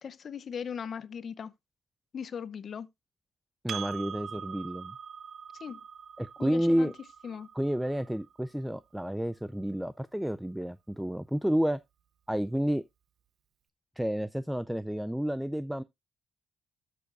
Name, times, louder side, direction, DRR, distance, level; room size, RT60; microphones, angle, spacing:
voice 1, 0.0-1.5 2.1-2.9 5.6-5.8 6.4-6.9 7.2-7.5, left 7 dB, 50° left, 0.7 m, -38 dB
voice 2, 3.6-5.0 6.2-6.9 7.5-11.8 12.3-12.8 14.0-15.8, equal, 5° right, 0.4 m, -30 dB
Percussion, 3.7-8.5, right 8 dB, 60° right, 0.7 m, -43 dB
13.0 x 7.0 x 2.5 m
cardioid pair, 90°, 0 cm